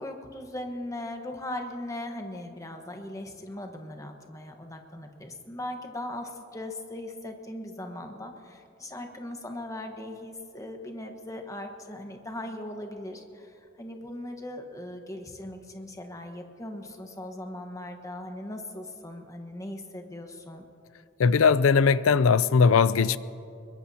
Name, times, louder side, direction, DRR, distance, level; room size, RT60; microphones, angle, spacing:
voice 1, 0.0-20.6, left 1 dB, 15° left, 1.2 m, -39 dB
voice 2, 21.2-23.2, left 5 dB, 85° left, 0.4 m, -20 dB
23.0 x 21.5 x 2.8 m
head